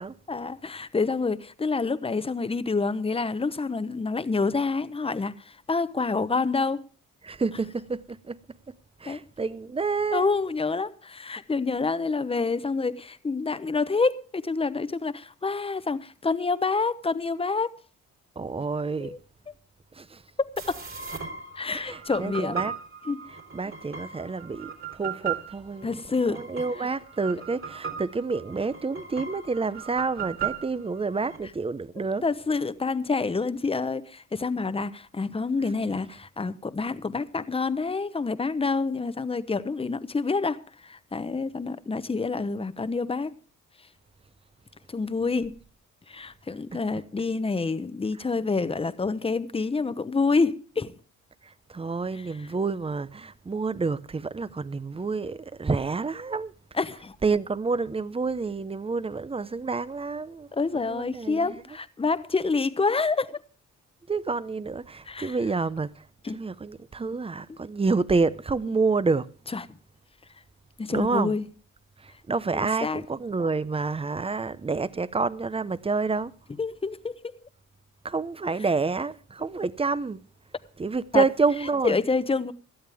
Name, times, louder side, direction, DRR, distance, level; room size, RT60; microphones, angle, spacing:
voice 1, 0.3-6.9 9.1-9.2 10.1-17.7 19.0-19.2 20.4-20.8 21.6-22.6 23.1-23.2 25.8-26.4 32.2-43.3 44.9-45.6 46.1-50.9 56.8-57.1 60.5-63.4 65.1-65.3 66.2-66.4 69.5-69.6 70.8-71.4 72.5-73.0 76.6-77.3 81.1-81.2 81.8-82.5, left 4 dB, 20° left, 0.9 m, -27 dB
voice 2, 7.2-8.7 9.0-10.3 18.4-19.2 19.9-20.2 21.7-22.7 23.3-25.9 26.3-32.2 46.7-46.8 51.4-56.5 57.2-60.5 60.7-61.6 64.1-66.1 66.3-69.3 70.9-71.3 72.0-76.3 78.0-80.2 80.8-82.0, right 4 dB, 20° right, 0.7 m, -28 dB
sound 1, 20.6-31.4, right 7 dB, 45° right, 3.8 m, -37 dB
17.5 x 12.5 x 3.5 m
cardioid pair, 90°, 30 cm